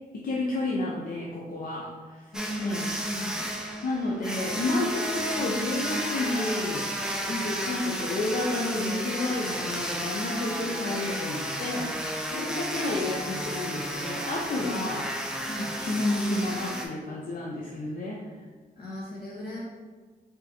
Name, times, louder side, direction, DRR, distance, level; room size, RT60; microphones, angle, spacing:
voice 1, 0.1-2.2 2.6-2.9 3.3-3.5 3.8-6.9 7.4-11.9 12.4-15.1 15.8-18.2, left 2 dB, 60° left, -3 dB, 0.6 m, -30 dB
voice 2, 2.3-3.5 7.3-7.5 10.5-10.9 12.3-13.1 14.6-14.9 15.5-15.7 18.8-19.6, left 1 dB, 75° left, -6 dB, 1.5 m, -37 dB
sound 1, 2.3-16.9, equal, 5° right, 0.5 m, -32 dB
4.0 x 3.5 x 2.8 m, 1.4 s
cardioid pair, 80°, 16 cm